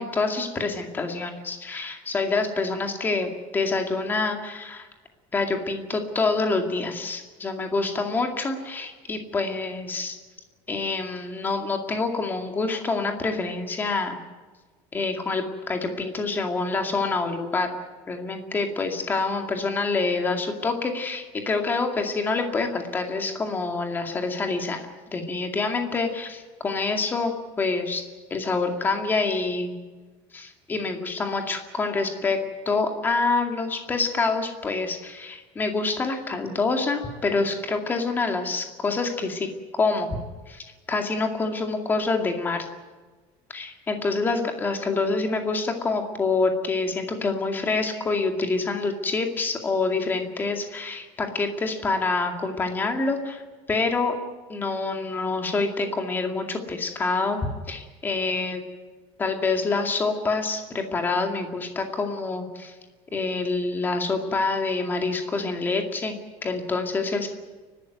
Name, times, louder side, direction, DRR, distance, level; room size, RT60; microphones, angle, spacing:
voice 1, 0.0-4.9 5.3-10.2 10.7-14.2 14.9-17.7 18.1-24.8 25.1-28.0 28.3-29.7 30.3-40.1 40.5-42.7 43.5-53.4 53.7-54.2 54.5-57.4 57.7-58.6 59.2-62.7 63.1-66.1 66.4-67.3, left 3 dB, 15° left, 4 dB, 2.2 m, -26 dB
30.0 x 12.5 x 9.3 m, 1.3 s
cardioid pair, 180°, 13 cm